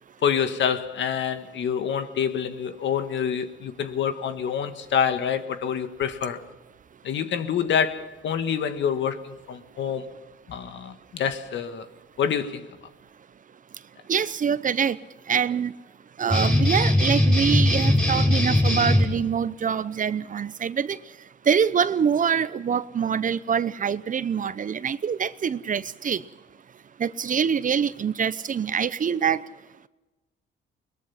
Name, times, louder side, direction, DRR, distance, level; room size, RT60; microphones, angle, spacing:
voice 1, 0.2-6.4 7.0-10.1 10.5-11.9 12.2-12.6, left 8 dB, 70° left, 1.7 m, -27 dB
voice 2, 14.1-15.0 15.3-15.7 16.2-21.0 21.5-26.2 27.0-29.5, right 7 dB, 40° right, 0.8 m, -25 dB
sound 1, 16.3-19.0, left 1 dB, 5° left, 6.5 m, -20 dB
22.0 x 21.0 x 5.8 m
cardioid pair, 90°, 20 cm